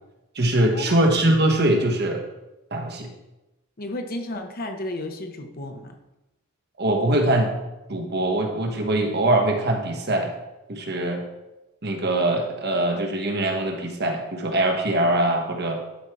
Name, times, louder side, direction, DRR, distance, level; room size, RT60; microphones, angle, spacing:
voice 1, 0.3-2.2 2.7-3.1 6.8-7.5 7.9-10.3 10.7-11.2 11.8-15.8, right 1 dB, 45° right, 3 dB, 1.2 m, -22 dB
voice 2, 3.8-6.0, left 1 dB, 40° left, 5 dB, 0.9 m, -33 dB
11.0 x 4.4 x 4.7 m, 0.98 s
head